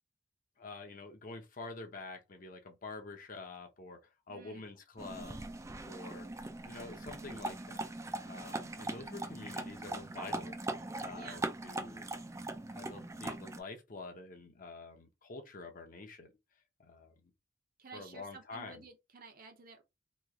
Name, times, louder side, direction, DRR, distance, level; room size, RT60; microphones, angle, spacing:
voice 1, 0.6-4.0 4.3-5.4 5.9-6.3 6.6-7.9 8.2-10.6 11.0-12.1 12.7-16.3 16.8-17.3 17.9-18.9, left 3 dB, 45° left, 0.8 m, -47 dB
voice 2, 4.3-4.7 11.1-11.4 17.8-19.8, right 4 dB, 50° right, 0.8 m, -52 dB
sound 1, 5.0-13.6, right 2 dB, 15° right, 0.4 m, -41 dB
3.1 x 2.4 x 3.6 m
head